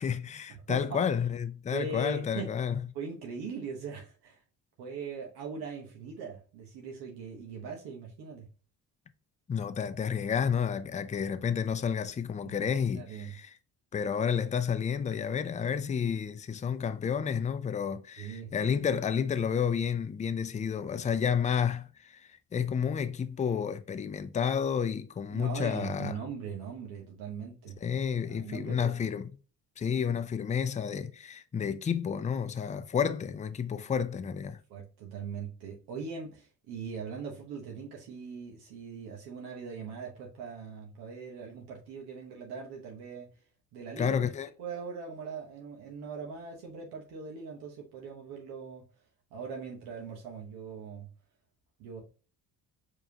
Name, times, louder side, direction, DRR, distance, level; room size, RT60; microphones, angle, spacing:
voice 1, 0.0-2.9 9.5-13.5 13.9-22.2 22.5-26.1 27.8-29.3 29.8-34.6 44.0-44.5, left 7 dB, 20° left, 0.4 m, -30 dB
voice 2, 0.5-1.0 1.7-2.5 2.9-4.4 4.8-8.5 12.4-13.3 18.2-18.5 25.3-27.8 28.3-29.0 34.7-43.3 43.7-44.2 44.6-48.8 49.3-51.1 51.8-52.0, right 5 dB, 85° right, 1.0 m, -40 dB
4.7 x 3.0 x 2.8 m
supercardioid pair, 75°, 38 cm